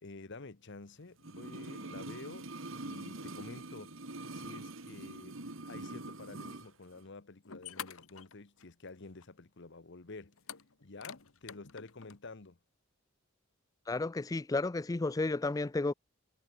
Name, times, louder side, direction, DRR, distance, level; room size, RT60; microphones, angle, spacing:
voice 1, 0.0-2.5 2.8-4.0 4.3-10.4 10.8-12.6, left 3 dB, 55° left, 1.1 m, -50 dB
sound 1, 1.2-6.7 7.0-7.1, right 2 dB, 65° right, 2.2 m, -44 dB
sound 2, 7.0-7.1 7.5-8.9 9.2-9.3 10.4-12.2, left 8 dB, 80° left, 1.8 m, -47 dB
voice 2, 13.9-15.9, left 3 dB, 15° left, 0.4 m, -32 dB
head